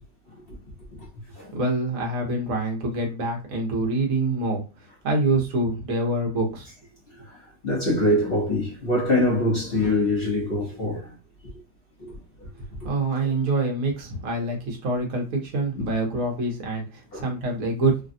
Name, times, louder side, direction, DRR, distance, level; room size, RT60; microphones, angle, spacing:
voice 1, 1.5-4.6 5.0-6.7 12.8-18.0, right 2 dB, 55° right, 1.2 m, -25 dB
voice 2, 7.6-11.1 13.2-13.3 15.7-15.9 17.1-17.3, left 1 dB, 45° left, 0.8 m, -23 dB
3.3 x 2.3 x 2.6 m
omnidirectional pair, 2.0 m